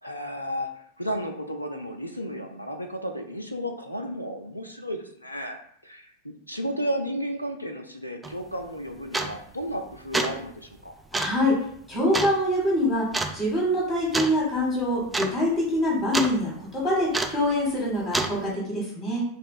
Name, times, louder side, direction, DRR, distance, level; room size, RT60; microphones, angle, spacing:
voice 1, 0.0-10.9, equal, 85° left, 5 dB, 0.3 m, -33 dB
sound 1, 8.2-8.4 9.1-9.5 10.0-10.4 11.1-11.4 12.1-12.4 13.1-13.4 14.1-14.4 14.7-14.8 15.1-15.3 15.6-16.3 17.1-17.5 18.1-18.4, right 2 dB, 10° right, 0.3 m, -27 dB
voice 2, 11.1-11.6 11.9-13.1 13.3-19.2, left 1 dB, 20° left, -4 dB, 1.2 m, -25 dB
2.9 x 2.2 x 4.1 m, 0.66 s
figure-of-eight pair, 90°, 0 cm